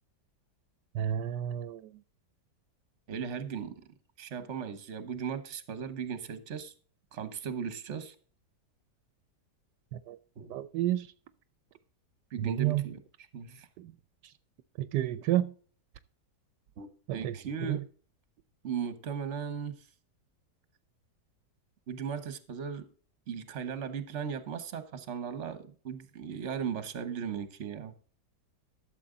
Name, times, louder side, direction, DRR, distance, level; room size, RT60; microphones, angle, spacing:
voice 1, 0.9-1.9 9.9-10.2 10.5-11.1 12.4-12.9 13.8-13.9 14.2-14.3 14.8-15.5 17.1-17.8, right 12 dB, 80° right, 1.2 m, -31 dB
voice 2, 3.1-3.7 4.2-6.7 7.1-8.1 10.4-10.6 12.3-13.0 13.3-13.7 16.8-17.8 18.6-19.8 21.9-22.8 23.3-27.9, right 7 dB, 45° right, 1.3 m, -37 dB
12.5 x 7.2 x 3.8 m
omnidirectional pair, 1.8 m